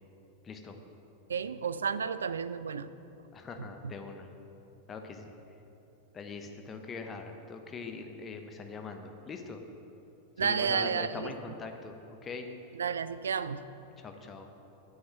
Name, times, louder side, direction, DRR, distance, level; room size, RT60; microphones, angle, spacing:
voice 1, 0.4-0.8 3.3-4.3 4.9-5.3 6.1-9.6 10.4-12.0 12.2-12.5 14.0-14.5, left 4 dB, 20° left, 5 dB, 1.0 m, -42 dB
voice 2, 1.3-2.9 10.4-11.3 12.8-13.6, right 6 dB, 70° right, 14 dB, 0.3 m, -31 dB
9.1 x 7.5 x 6.4 m, 2.9 s
figure-of-eight pair, 90°, 0 cm